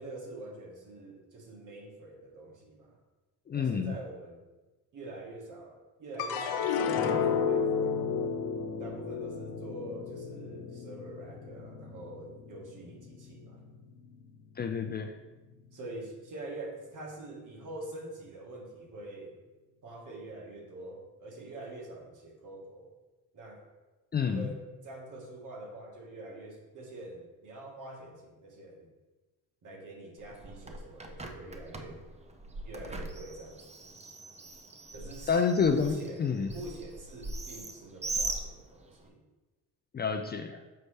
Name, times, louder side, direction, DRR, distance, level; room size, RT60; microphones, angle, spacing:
voice 1, 0.0-3.0 3.5-4.4 4.9-8.3 8.8-13.6 15.7-19.4 19.8-22.9 23.3-23.6 24.2-28.9 29.6-32.0 32.6-33.9 34.9-39.2, right 2 dB, 60° right, 0 dB, 1.6 m, -45 dB
voice 2, 3.5-3.9 14.6-15.1 24.1-24.4 35.3-35.9 36.2-36.5 39.9-40.6, left 6 dB, 30° left, 6 dB, 0.4 m, -28 dB
sound 1, 6.2-12.6 13.1-13.8, left 6 dB, 90° left, 0.7 m, -32 dB
Bird, 30.2-39.1, right 3 dB, 20° right, 0.6 m, -41 dB
6.6 x 5.3 x 3.3 m, 1.2 s
cardioid pair, 110°, 36 cm